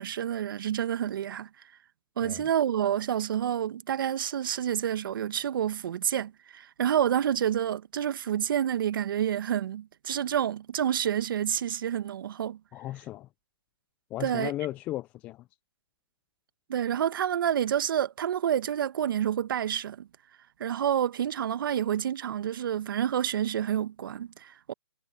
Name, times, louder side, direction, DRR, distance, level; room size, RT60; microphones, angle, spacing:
voice 1, 0.0-1.5 2.2-12.6 14.2-14.5 16.7-20.1 20.6-24.7, right 10 dB, 50° right, 1.2 m, -28 dB
voice 2, 12.7-13.3 14.1-15.4, left 15 dB, 10° left, 0.3 m, -35 dB
hypercardioid pair, 150°, 15 cm